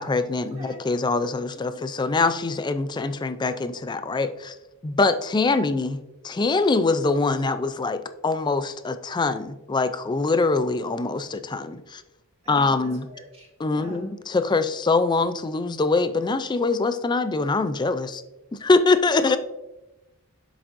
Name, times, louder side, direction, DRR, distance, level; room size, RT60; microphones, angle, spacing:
voice 1, 0.0-4.6 4.8-12.0 12.5-13.1 13.6-18.2 18.5-19.4, left 3 dB, 20° left, 11 dB, 0.3 m, -24 dB
voice 2, 12.4-14.0 19.2-19.4, equal, 25° right, -3 dB, 1.9 m, -43 dB
7.3 x 7.1 x 2.6 m, 0.99 s
head